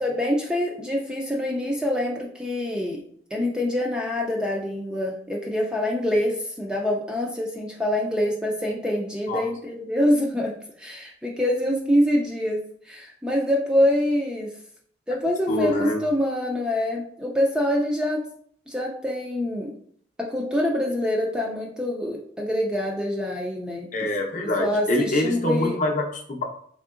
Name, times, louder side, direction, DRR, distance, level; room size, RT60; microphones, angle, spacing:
voice 1, 0.0-3.0 3.3-14.5 15.1-18.2 18.7-19.7 20.2-23.9 24.4-25.8, left 1 dB, 5° right, -1 dB, 0.3 m, -25 dB
voice 2, 15.5-16.0 23.9-26.4, left 1 dB, 40° left, 1 dB, 0.6 m, -25 dB
3.6 x 3.5 x 2.4 m, 0.62 s
head